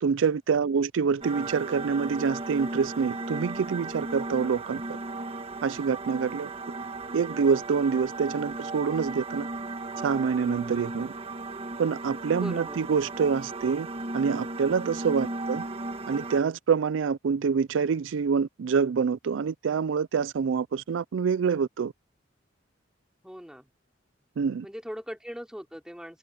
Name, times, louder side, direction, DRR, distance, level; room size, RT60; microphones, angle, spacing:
voice 1, 0.0-4.8 5.6-6.5 7.1-9.5 10.0-11.1 11.8-13.9 14.1-15.6 16.1-21.9 24.4-24.7, right 6 dB, 90° right, 0.4 m, -26 dB
sound 1, 1.2-16.4, right 2 dB, 30° right, 1.3 m, -36 dB
voice 2, 12.3-12.9 15.2-15.6 23.2-23.7 24.6-26.2, equal, 5° right, 3.7 m, -41 dB
head